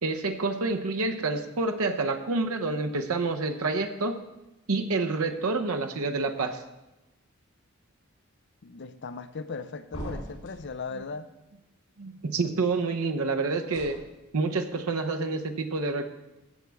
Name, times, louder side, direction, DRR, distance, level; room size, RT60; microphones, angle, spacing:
voice 1, 0.0-4.2 4.7-6.6 12.0-14.0 14.3-16.1, right 3 dB, 90° right, 5 dB, 0.8 m, -28 dB
voice 2, 8.6-11.3, left 4 dB, 55° left, 12 dB, 0.5 m, -38 dB
sound 1, 9.9-10.8 13.7-14.0, equal, 90° left, 4.3 m, -39 dB
14.5 x 7.4 x 3.5 m, 1.0 s
head